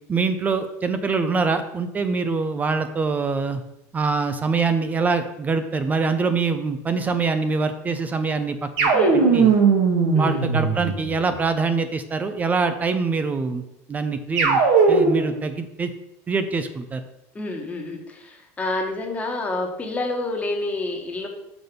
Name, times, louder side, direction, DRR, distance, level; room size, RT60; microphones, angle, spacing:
voice 1, 0.1-3.6 3.9-8.9 9.3-9.5 10.2-13.6 13.9-14.6 14.9-15.9 16.3-17.0, right 4 dB, 20° right, 9 dB, 0.5 m, -24 dB
sound 1, 8.8-11.3 14.4-15.4, right 4 dB, 65° right, 1.6 m, -18 dB
voice 2, 8.9-9.4 10.1-10.5 17.3-21.3, left 2 dB, 15° left, 2 dB, 1.3 m, -28 dB
6.0 x 5.1 x 5.3 m, 0.85 s
supercardioid pair, 130°, 8 cm